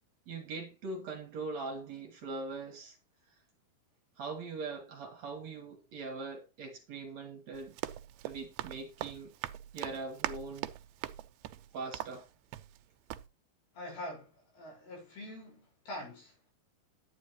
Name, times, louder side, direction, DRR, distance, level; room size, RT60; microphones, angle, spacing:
voice 1, 0.3-3.0 4.2-7.8 8.2-9.3 9.7-10.7 11.7-12.3, right 3 dB, 55° right, 2.1 m, -41 dB
Run, 7.5-12.8 13.1-13.3, right 14 dB, 85° right, 2.5 m, -41 dB
voice 2, 13.7-16.4, left 1 dB, 80° left, 6.7 m, -44 dB
10.0 x 9.7 x 3.0 m
omnidirectional pair, 4.4 m